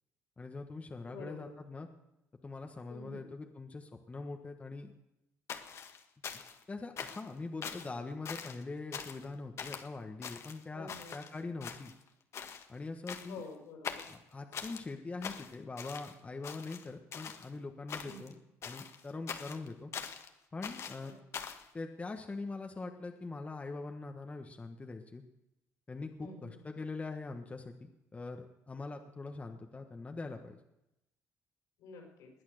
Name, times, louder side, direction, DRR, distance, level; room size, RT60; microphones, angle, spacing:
voice 1, 0.4-1.9 2.4-4.9 6.3-11.9 12.7-13.4 14.1-19.9 20.5-21.1 21.7-25.2 25.9-30.6, left 3 dB, 25° left, 4 dB, 1.4 m, -43 dB
voice 2, 1.0-1.5 2.9-3.3 10.7-11.2 13.3-14.1 18.0-18.2 21.0-21.1 26.2-26.6 31.8-32.3, left 3 dB, 85° left, 1 dB, 5.3 m, -48 dB
sound 1, 5.5-6.6 7.0-7.3 7.6-7.9 8.3-8.6 8.9-9.3 9.6-9.9 10.2-11.3 11.6-12.1 12.3-12.7 13.1-13.5 13.8-14.8 15.2-16.1 16.4-17.5 17.9-18.3 18.6-20.3 20.6-21.7, left 7 dB, 55° left, 1.5 m, -43 dB
20.5 x 8.7 x 6.6 m, 0.89 s
cardioid pair, 90°, 6 cm